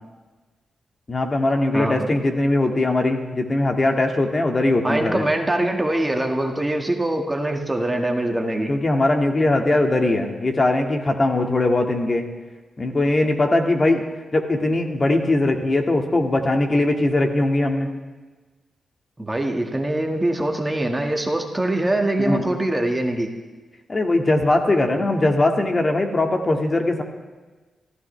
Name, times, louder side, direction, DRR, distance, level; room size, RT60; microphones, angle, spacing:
voice 1, 1.1-5.2 8.7-12.2 12.8-14.0 14.3-17.9 22.2-22.4 23.9-27.0, left 2 dB, 35° left, 3 dB, 2.1 m, -20 dB
voice 2, 1.7-2.1 4.8-8.7 19.2-23.3, right 1 dB, 15° right, 2 dB, 2.0 m, -23 dB
26.0 x 15.5 x 3.4 m, 1.3 s
cardioid pair, 85°, 0 cm